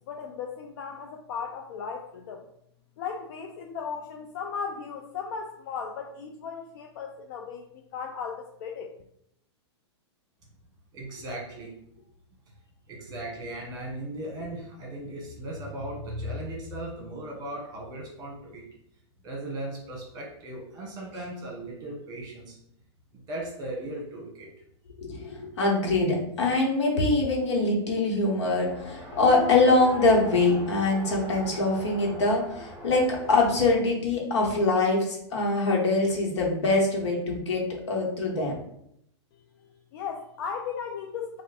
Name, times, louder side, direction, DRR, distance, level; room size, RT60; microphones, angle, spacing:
voice 1, 0.1-2.5 3.0-8.9 39.9-41.4, left 6 dB, 50° left, 3 dB, 0.5 m, -36 dB
voice 2, 10.9-11.7 12.9-18.6 19.2-22.6 23.1-24.5, right 1 dB, 25° right, -1 dB, 1.4 m, -37 dB
voice 3, 25.0-38.6, left 2 dB, 75° left, -1 dB, 1.3 m, -24 dB
Race car auto racing, 28.6-33.9, left 1 dB, 10° right, 1.2 m, -40 dB
3.2 x 2.5 x 4.1 m, 0.74 s
hypercardioid pair, 135°, 15 cm